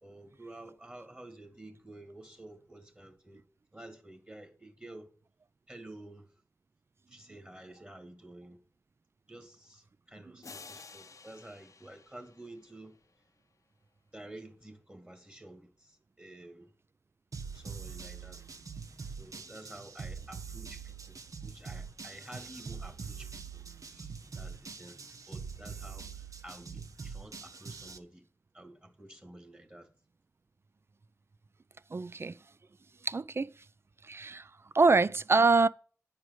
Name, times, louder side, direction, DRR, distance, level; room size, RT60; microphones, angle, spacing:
voice 1, 0.0-3.4 3.7-5.1 5.7-6.3 7.1-8.6 9.3-13.0 14.1-16.7 17.5-18.4 19.2-25.0 25.3-28.3 28.5-29.9, right 1 dB, 20° right, 2.1 m, -50 dB
sound 1, 10.4-13.1, left 4 dB, 65° left, 0.7 m, -52 dB
sound 2, 17.3-28.0, right 5 dB, 70° right, 0.8 m, -44 dB
voice 2, 31.9-32.3 33.0-33.5 34.0-34.5 34.7-35.7, right 3 dB, 45° right, 0.4 m, -25 dB
10.0 x 4.8 x 8.1 m
cardioid pair, 55°, 6 cm